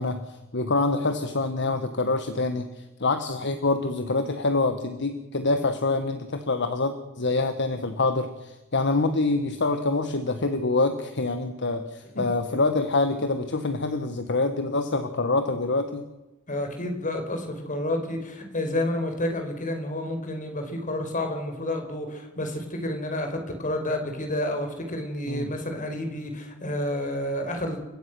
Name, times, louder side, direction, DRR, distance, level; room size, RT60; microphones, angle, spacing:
voice 1, 0.0-16.0 25.3-25.5, left 3 dB, 55° left, 8 dB, 1.5 m, -26 dB
voice 2, 16.5-27.8, left 1 dB, 40° left, 5 dB, 4.8 m, -30 dB
29.5 x 16.5 x 6.3 m, 1.1 s
head